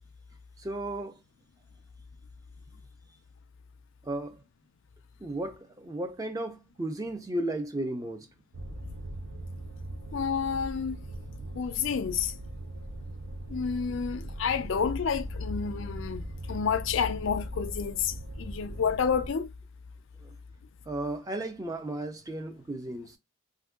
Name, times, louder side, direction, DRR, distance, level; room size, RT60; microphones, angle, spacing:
voice 1, 0.6-1.2 4.0-4.4 5.2-8.3 20.2-20.4 20.9-23.2, right 1 dB, 15° right, 0.4 m, -34 dB
sound 1, 8.5-19.3, right 1 dB, 75° right, 0.5 m, -41 dB
voice 2, 10.1-11.0 11.5-12.3 13.5-16.2 16.5-19.5, left 6 dB, 65° left, 0.4 m, -29 dB
2.5 x 2.2 x 3.5 m
head